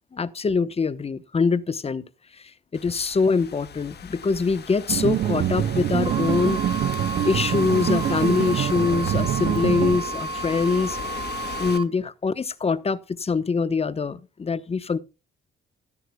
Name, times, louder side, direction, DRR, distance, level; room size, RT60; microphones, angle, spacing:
voice 1, 0.1-2.0 2.3-6.8 7.2-11.2 11.6-15.0, left 4 dB, 30° left, 1.1 m, -24 dB
Thunderstorm / Rain, 2.7-11.8, left 8 dB, 55° left, 1.9 m, -38 dB
sound 1, 4.9-10.0, right 11 dB, 55° right, 0.6 m, -25 dB
sound 2, 6.0-11.8, right 4 dB, 25° right, 1.2 m, -32 dB
15.0 x 12.5 x 2.3 m
cardioid pair, 90°, 20 cm